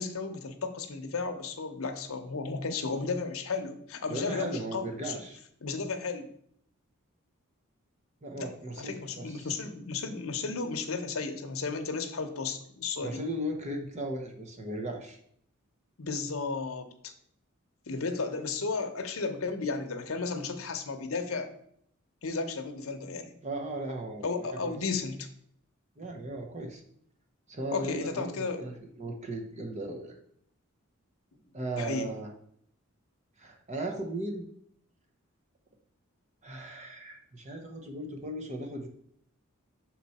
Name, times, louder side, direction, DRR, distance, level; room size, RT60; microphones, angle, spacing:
voice 1, 0.0-5.1 5.6-6.3 8.4-8.5 8.8-13.2 16.0-17.1 17.9-21.5 22.2-23.3 24.2-25.3 27.7-28.7 31.8-32.1, left 4 dB, 70° left, 6 dB, 0.8 m, -34 dB
voice 2, 4.1-5.4 8.2-9.5 13.0-15.2 23.4-24.8 26.0-26.8 27.5-28.7 29.0-30.2 31.5-32.3 33.4-34.4 36.4-38.9, right 1 dB, 30° right, 3 dB, 0.8 m, -37 dB
6.1 x 4.3 x 4.1 m, 0.67 s
head